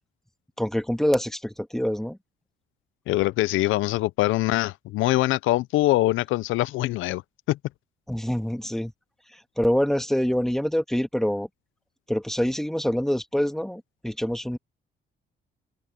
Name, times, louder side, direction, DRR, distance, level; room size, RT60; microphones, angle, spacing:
voice 1, 0.6-2.2 8.1-8.9 9.3-11.5 12.1-14.6, equal, ahead, 2.1 m, -25 dB
voice 2, 3.1-7.2 7.5-7.6, left 17 dB, 90° left, 0.5 m, -23 dB
cardioid pair, 90°, 20 cm